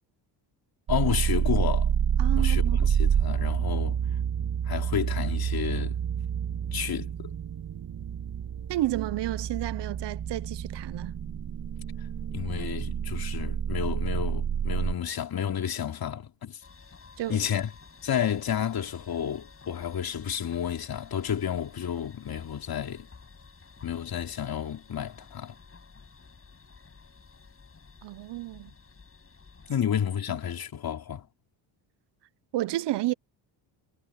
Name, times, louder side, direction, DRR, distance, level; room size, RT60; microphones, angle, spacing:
voice 1, 0.9-1.9 2.4-4.0 4.7-6.0 6.7-7.3 12.3-16.6 17.3-17.7 18.0-23.1 23.8-25.5 29.7-31.3, left 9 dB, 50° left, 3.2 m, -31 dB
sound 1, 0.9-14.9, right 8 dB, 45° right, 2.0 m, -28 dB
voice 2, 2.2-2.8 8.7-11.2 17.2-17.5 28.0-28.7 32.5-33.1, right 16 dB, 60° right, 0.8 m, -31 dB
sound 2, 16.6-29.7, left 4 dB, 30° left, 8.0 m, -52 dB
cardioid pair, 100°, 46 cm